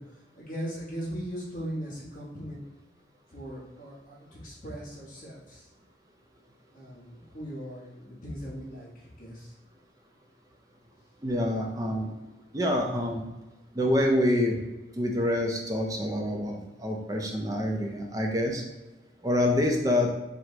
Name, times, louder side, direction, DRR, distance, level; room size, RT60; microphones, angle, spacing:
voice 1, 0.0-2.6 3.3-5.7 6.7-9.5, equal, 45° left, -8 dB, 1.3 m, -39 dB
voice 2, 11.2-12.1 12.5-13.2 13.7-14.6 15.0-18.6 19.2-20.1, left 1 dB, 20° right, 1 dB, 0.5 m, -26 dB
4.6 x 2.2 x 3.8 m, 1.0 s
head